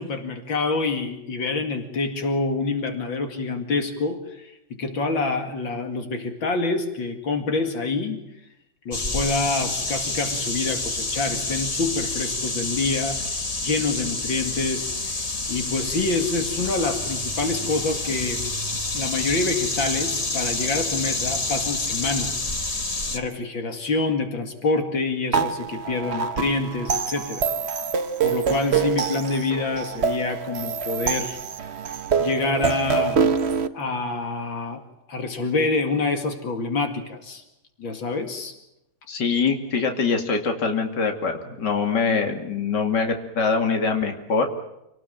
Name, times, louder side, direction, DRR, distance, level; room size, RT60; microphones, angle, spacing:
voice 1, 0.0-8.2 8.8-13.3 13.6-18.4 18.9-22.5 23.1-27.5 28.2-31.4 32.2-33.3 33.7-34.8 35.1-37.4 37.8-38.5, left 3 dB, 80° left, 5 dB, 3.0 m, -27 dB
sound 1, 8.9-23.2, left 2 dB, 20° left, 1.4 m, -28 dB
sound 2, 25.3-33.7, right 6 dB, 40° right, 1.1 m, -25 dB
voice 2, 39.1-44.5, left 5 dB, 65° left, 4 dB, 3.1 m, -23 dB
28.0 x 19.0 x 9.0 m, 0.88 s
omnidirectional pair, 2.1 m